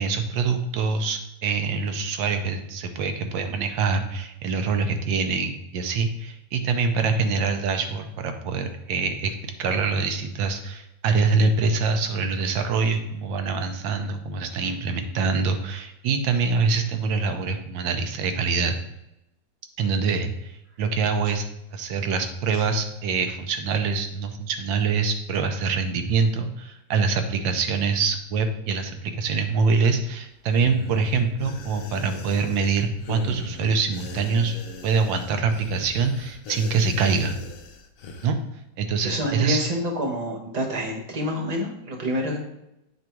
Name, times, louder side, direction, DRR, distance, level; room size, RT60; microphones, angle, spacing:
voice 1, 0.0-18.7 19.8-20.5 20.8-21.5 21.7-34.6 34.8-37.3 38.2-38.4 38.8-39.6, right 4 dB, 80° right, 7 dB, 1.4 m, -25 dB
sound 1, 30.5-38.3, left 3 dB, 65° left, 0.9 m, -39 dB
voice 2, 39.0-42.4, equal, 25° right, -1 dB, 0.9 m, -27 dB
7.9 x 3.5 x 4.5 m, 0.87 s
omnidirectional pair, 2.1 m